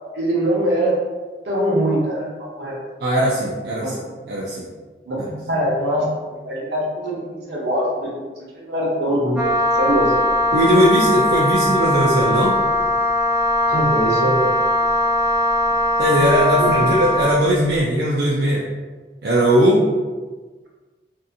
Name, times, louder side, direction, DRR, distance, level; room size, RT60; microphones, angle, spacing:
voice 1, 0.1-1.0 1.4-2.8 3.8-3.9 5.1-10.2 13.7-14.5 15.7-15.8 16.6-16.9, right 1 dB, 85° right, -4 dB, 0.8 m, -23 dB
voice 2, 3.0-4.0 4.3-4.7 10.5-12.6 16.0-18.6 19.2-19.9, equal, 65° right, -5 dB, 0.4 m, -18 dB
Wind instrument woodwind instrument, 9.4-17.4, left 1 dB, 5° right, 0.7 m, -20 dB
2.6 x 2.4 x 2.6 m, 1.3 s
head